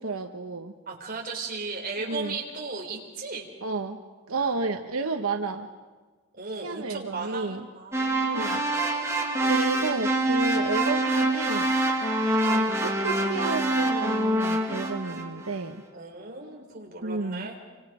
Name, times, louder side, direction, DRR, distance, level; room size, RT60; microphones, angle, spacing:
voice 1, 0.0-0.8 2.0-2.4 3.6-4.0 4.3-5.7 6.6-7.7 8.2-8.7 9.4-11.7 12.4-15.8 17.0-17.5, right 3 dB, 85° right, 5 dB, 1.1 m, -31 dB
voice 2, 0.9-3.5 4.4-4.5 6.3-8.5 15.9-17.6, right 3 dB, 40° right, 0 dB, 3.9 m, -36 dB
sound 1, 7.9-15.4, right 1 dB, 15° right, 2.0 m, -25 dB
29.0 x 24.5 x 5.0 m, 1.4 s
head